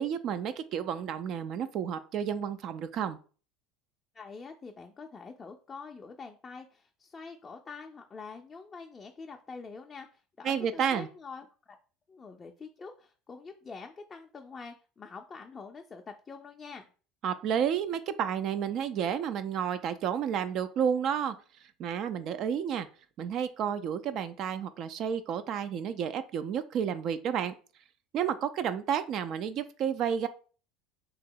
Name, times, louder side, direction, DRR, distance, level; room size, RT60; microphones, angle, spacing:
voice 1, 0.0-3.2 10.4-11.1 17.2-21.4 21.8-22.9 23.2-27.5 28.1-30.3, right 8 dB, 50° right, 12 dB, 0.3 m, -31 dB
voice 2, 4.1-11.8 12.1-16.9, left 4 dB, 25° left, 3 dB, 0.4 m, -46 dB
2.9 x 2.7 x 3.7 m, 0.38 s
supercardioid pair, 115°, 0 cm